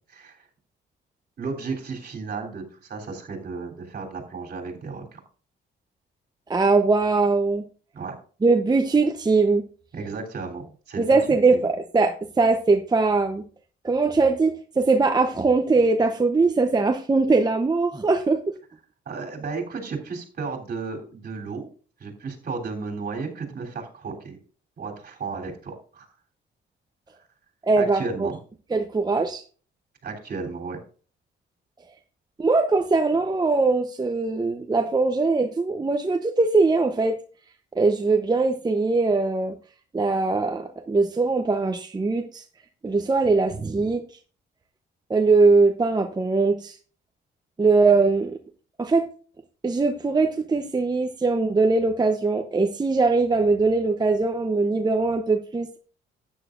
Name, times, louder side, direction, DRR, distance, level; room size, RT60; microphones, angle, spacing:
voice 1, 0.1-0.4 1.4-5.2 7.9-8.2 9.9-11.7 19.1-21.6 22.0-24.4 24.8-26.1 27.7-28.4 30.0-30.8, right 4 dB, 50° right, 1 dB, 3.3 m, -33 dB
voice 2, 6.5-7.6 8.4-9.6 11.0-13.4 13.8-18.4 27.6-28.3 28.7-29.4 32.4-37.1 37.8-39.5 39.9-42.4 42.8-44.0 45.1-46.8 47.6-48.4 48.8-49.0 49.6-55.8, right 3 dB, 20° right, 5 dB, 0.8 m, -21 dB
13.0 x 9.2 x 2.5 m, 0.41 s
cardioid pair, 90°, 20 cm